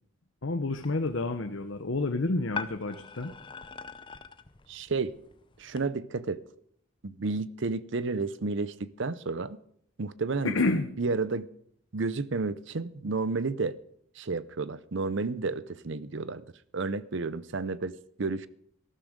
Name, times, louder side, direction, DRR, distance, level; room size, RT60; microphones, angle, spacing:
voice 1, 0.4-3.3 10.4-10.9, left 2 dB, 65° left, 7 dB, 0.9 m, -29 dB
sound 1, 0.7-5.8, left 5 dB, 25° left, 0.6 m, -44 dB
voice 2, 4.7-5.1 5.6-6.4 7.0-9.6 10.0-10.5 11.0-11.5 11.9-13.8 14.2-16.4 16.7-18.5, right 3 dB, 55° right, 17 dB, 0.6 m, -31 dB
14.0 x 12.5 x 5.1 m, 0.66 s
head